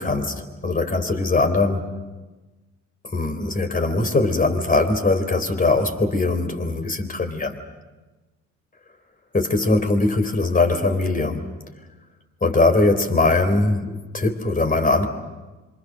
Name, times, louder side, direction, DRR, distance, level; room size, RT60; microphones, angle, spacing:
voice 1, 0.0-1.9 3.0-7.6 9.3-11.5 12.4-15.1, left 2 dB, 30° left, 6 dB, 3.7 m, -21 dB
26.5 x 25.0 x 6.6 m, 1.2 s
cardioid pair, 90°, 30 cm